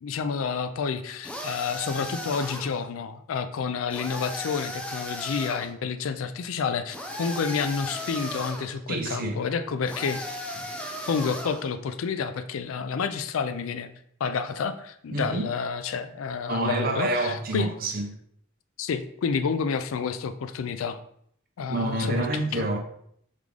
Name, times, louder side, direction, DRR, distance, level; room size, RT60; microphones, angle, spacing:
voice 1, 0.0-10.2 11.1-13.9 14.2-17.7 18.8-21.0 21.6-22.3 22.5-22.6, left 5 dB, 85° left, 0.4 m, -29 dB
sound 1, 1.2-2.8 3.9-5.7 6.9-8.7 9.9-11.7, left 1 dB, 5° left, 0.4 m, -36 dB
voice 2, 8.9-9.4 15.1-15.4 16.5-18.2 21.7-22.8, right 2 dB, 45° right, 0.6 m, -28 dB
3.7 x 3.6 x 3.3 m
head